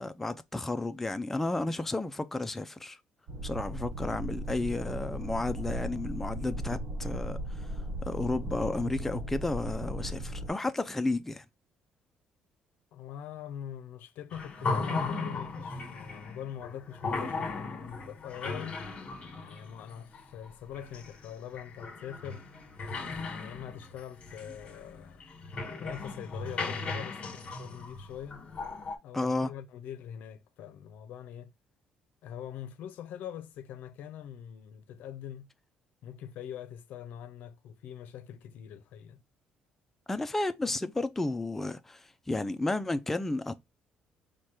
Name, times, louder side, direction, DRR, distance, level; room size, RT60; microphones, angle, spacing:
voice 1, 0.0-3.0 3.4-7.7 8.0-11.4 29.1-29.5 40.1-43.6, left 2 dB, 10° left, 0.3 m, -32 dB
sound 1, 3.3-10.5, right 1 dB, 50° right, 1.1 m, -37 dB
voice 2, 12.9-18.8 19.4-22.4 23.1-25.2 25.8-28.4 29.0-31.5 32.2-35.5 36.0-39.2, left 9 dB, 75° left, 0.5 m, -43 dB
water in hell, 14.3-29.0, left 3 dB, 40° left, 1.3 m, -37 dB
4.7 x 2.2 x 4.3 m
cardioid pair, 110°, 3 cm